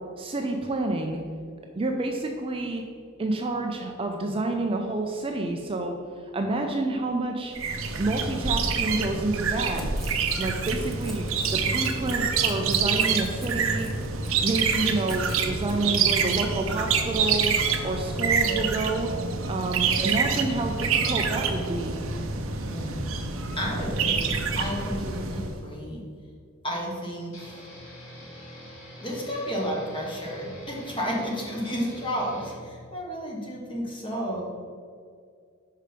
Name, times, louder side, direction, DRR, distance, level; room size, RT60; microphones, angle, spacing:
voice 1, 0.2-1.2 1.8-2.8 3.2-6.0 6.3-7.5 8.0-9.8 10.4-11.2 11.5-13.9 14.4-17.5 17.8-19.1 19.5-22.0, right 2 dB, 25° right, 3 dB, 0.4 m, -29 dB
sound 1, 7.5-25.6, right 5 dB, 70° right, 0.6 m, -27 dB
Crackle / Tearing, 9.4-15.8, right 1 dB, ahead, 0.8 m, -43 dB
voice 2, 23.6-24.3 24.6-26.0 26.6-27.7 29.0-34.4, equal, 25° left, -2 dB, 1.4 m, -32 dB
sound 2, 27.3-32.6, equal, 80° left, 1.5 m, -44 dB
5.6 x 5.0 x 5.1 m, 2.2 s
head